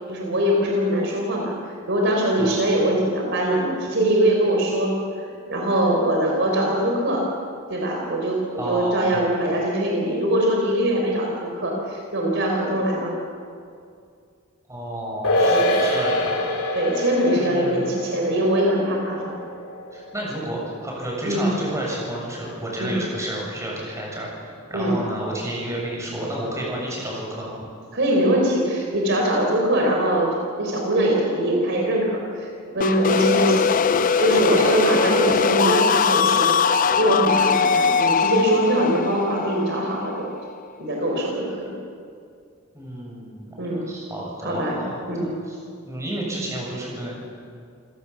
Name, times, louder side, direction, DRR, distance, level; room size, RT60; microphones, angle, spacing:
voice 1, 0.1-1.5 1.9-4.9 5.2-7.2 7.7-13.1 15.5-15.7 16.7-19.2 21.2-21.5 22.8-23.0 24.7-25.0 27.9-33.8 34.2-36.6 37.0-40.3 40.8-41.7 43.6-43.8 44.4-44.8 45.1-45.3, right 1 dB, 55° right, 0 dB, 4.1 m, -22 dB
voice 2, 8.6-9.2 14.7-16.4 17.3-18.0 19.9-27.6 42.7-45.6 45.8-47.2, right 1 dB, 15° right, -3 dB, 7.3 m, -31 dB
sound 1, 15.2-21.9 22.2-22.3, left 1 dB, 80° left, 4.4 m, -26 dB
sound 2, 32.8-40.5, left 5 dB, 40° left, 0.5 m, -21 dB
28.0 x 16.5 x 7.3 m, 2.3 s
head